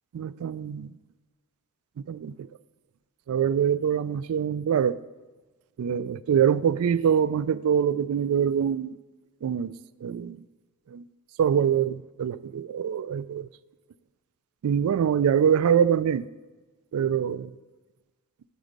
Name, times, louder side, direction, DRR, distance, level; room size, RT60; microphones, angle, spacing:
voice 1, 0.1-0.9 2.1-2.5 3.3-5.0 5.8-9.0 9.4-9.7 10.0-10.4 10.9-11.0 11.4-13.5 14.6-16.3 16.9-17.5, right 8 dB, 75° right, 0.3 m, -24 dB
11.5 x 4.0 x 5.2 m
head